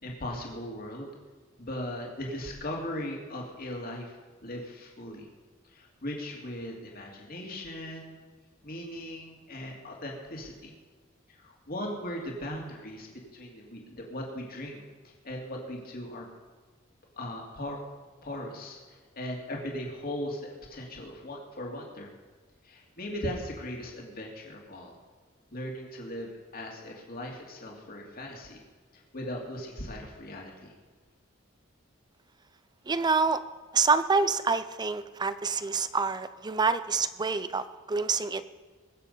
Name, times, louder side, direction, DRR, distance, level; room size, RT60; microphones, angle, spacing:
voice 1, 0.0-1.1 1.6-5.3 5.7-8.1 8.6-10.7 11.4-16.3 17.2-17.8 18.2-22.1 22.6-25.0 25.5-28.6 28.9-30.7, left 1 dB, 50° left, -1 dB, 2.6 m, -38 dB
voice 2, 32.9-33.4 33.7-38.4, right 4 dB, 20° right, 13 dB, 0.5 m, -27 dB
21.0 x 7.7 x 5.5 m, 1.4 s
head